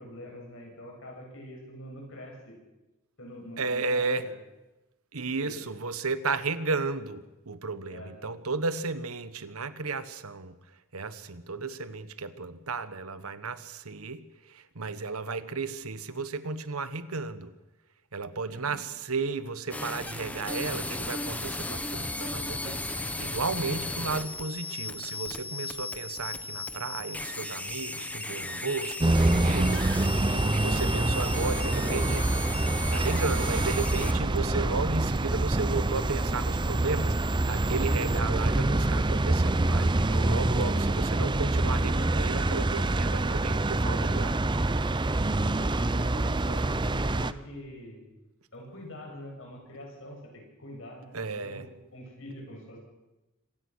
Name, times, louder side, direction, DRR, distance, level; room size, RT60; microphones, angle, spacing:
voice 1, 0.0-2.5 3.2-4.3 5.4-5.6 7.9-8.1 18.5-18.8 23.8-23.9 31.4-32.2 40.6-40.8 43.9-44.2 45.0-48.0 48.5-52.8, left 1 dB, 60° left, 0 dB, 7.8 m, -44 dB
voice 2, 3.6-4.3 5.1-17.5 18.1-32.3 32.7-44.5 51.1-51.7, right 4 dB, 85° right, 13 dB, 1.3 m, -34 dB
sound 1, 19.7-38.2, left 2 dB, 5° left, 1.1 m, -36 dB
sound 2, 29.0-47.3, right 2 dB, 20° right, 0.6 m, -26 dB
26.0 x 17.0 x 6.4 m, 1.0 s
head